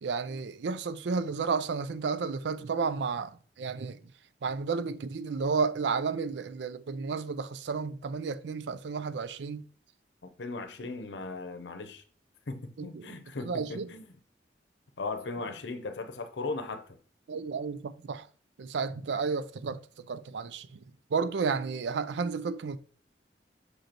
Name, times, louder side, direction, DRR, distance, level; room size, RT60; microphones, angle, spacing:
voice 1, 0.0-4.0 4.4-9.6 12.8-13.2 13.4-13.9 17.3-18.3 18.6-20.8 21.1-22.8, right 5 dB, 80° right, 0.4 m, -32 dB
voice 2, 10.2-12.0 12.5-14.2 15.0-17.0, left 3 dB, 85° left, 0.7 m, -38 dB
6.4 x 5.1 x 2.9 m
head